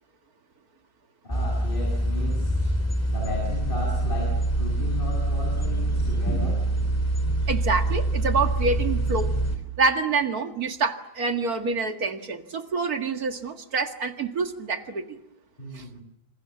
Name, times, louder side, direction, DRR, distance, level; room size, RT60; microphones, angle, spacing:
voice 1, 1.2-2.6 3.1-6.6 15.6-16.0, left 1 dB, 35° left, 0 dB, 7.6 m, -35 dB
sound 1, 1.3-9.6, right 1 dB, 10° left, 3.5 m, -25 dB
voice 2, 7.5-9.3 9.8-15.2 15.7-15.9, right 4 dB, 70° right, 7 dB, 2.3 m, -27 dB
27.5 x 27.0 x 7.1 m, 0.78 s
omnidirectional pair, 1.6 m